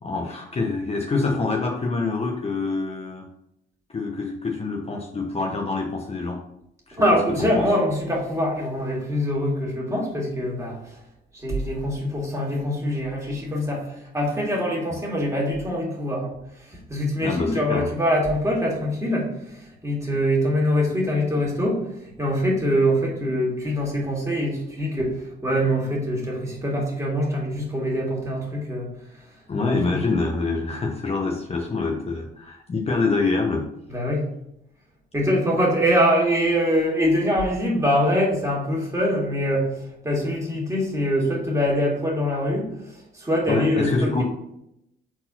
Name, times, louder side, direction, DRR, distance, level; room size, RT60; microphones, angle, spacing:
voice 1, 0.0-3.3 3.9-6.4 6.9-7.0 7.5-7.8 17.2-17.9 29.5-33.7 43.5-44.2, left 3 dB, 30° left, 1 dB, 0.9 m, -26 dB
voice 2, 7.0-11.0 11.3-16.3 16.7-28.9 29.6-30.0 33.9-34.3 35.1-44.2, equal, 15° right, -3 dB, 2.3 m, -24 dB
4.5 x 4.0 x 5.6 m, 0.79 s
cardioid pair, 90°, 20 cm